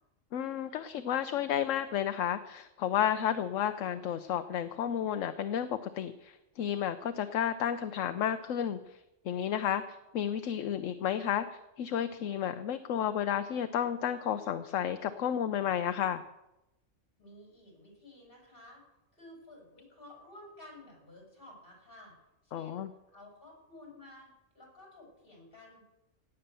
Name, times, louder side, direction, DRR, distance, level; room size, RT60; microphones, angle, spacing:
voice 1, 0.3-9.0 9.2-11.5 11.8-16.2 22.5-22.9, left 9 dB, 70° left, 10 dB, 1.0 m, -32 dB
voice 2, 17.2-18.8 19.1-22.1 22.4-25.8, left 1 dB, 40° left, -1 dB, 5.9 m, -53 dB
17.5 x 8.9 x 6.8 m, 0.94 s
omnidirectional pair, 1.4 m